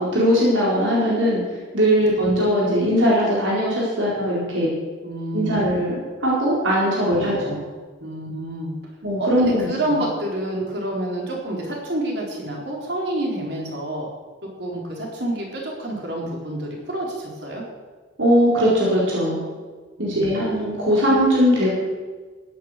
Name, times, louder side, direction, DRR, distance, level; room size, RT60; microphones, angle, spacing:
voice 1, 0.0-1.4 1.7-4.7 5.3-7.6 9.0-10.0 18.2-19.4 20.0-21.7, equal, 90° right, -5 dB, 4.6 m, -20 dB
voice 2, 5.0-5.6 7.1-7.4 8.0-8.7 9.2-14.1 14.6-17.6 20.0-20.2, right 1 dB, 60° right, -1 dB, 4.0 m, -28 dB
15.5 x 9.7 x 6.7 m, 1.4 s
head